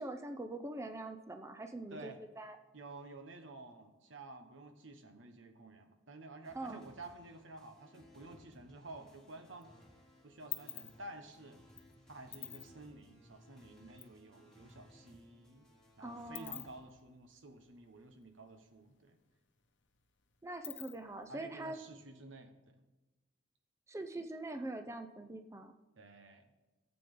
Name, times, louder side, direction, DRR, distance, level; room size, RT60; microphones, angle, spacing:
voice 1, 0.0-2.6 6.5-6.8 16.0-16.6 20.4-21.8 23.9-25.7, right 2 dB, 15° right, 6 dB, 0.5 m, -43 dB
voice 2, 2.7-9.7 10.2-11.6 12.1-15.7 16.0-19.2 21.3-22.8 26.0-26.5, right 2 dB, 80° right, 6 dB, 1.3 m, -52 dB
sound 1, 6.4-16.8, left 1 dB, 5° left, 3.3 m, -62 dB
sound 2, 8.8-9.6 9.9-14.1 14.4-14.5 14.8-18.6 18.9-19.0 19.3-21.3, left 15 dB, 65° left, 0.8 m, -48 dB
16.5 x 7.7 x 3.8 m, 1.1 s
head